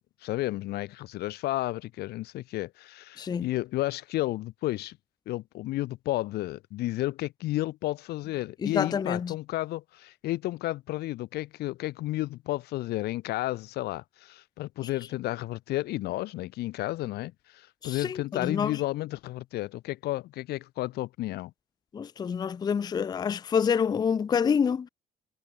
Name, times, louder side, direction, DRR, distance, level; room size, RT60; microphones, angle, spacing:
voice 1, 0.2-5.0 5.3-21.5, left 17 dB, 70° left, 0.6 m, -32 dB
voice 2, 3.2-3.5 8.6-9.3 14.8-14.9 17.8-18.8 21.9-24.9, left 7 dB, 25° left, 0.4 m, -27 dB
cardioid pair, 110°, 17 cm